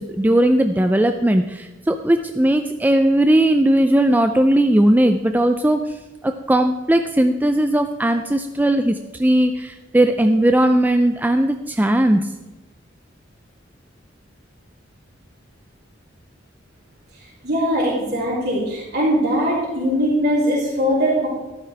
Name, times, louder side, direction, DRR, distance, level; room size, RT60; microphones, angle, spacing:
voice 1, 0.0-12.3, right 1 dB, 10° right, 6 dB, 0.4 m, -18 dB
voice 2, 17.4-21.3, equal, 60° right, -8 dB, 3.7 m, -20 dB
13.5 x 12.5 x 3.4 m, 1.1 s
head